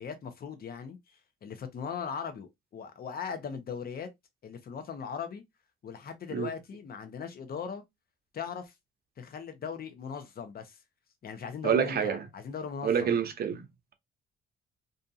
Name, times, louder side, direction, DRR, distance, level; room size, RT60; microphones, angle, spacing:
voice 1, 0.0-4.1 4.4-5.4 5.8-7.8 8.3-8.7 9.2-10.8 11.2-13.2, left 6 dB, 50° left, 0.8 m, -39 dB
voice 2, 11.6-12.2 12.8-13.6, right 7 dB, 50° right, 0.7 m, -27 dB
2.6 x 2.4 x 2.6 m
cardioid pair, 90°, 20 cm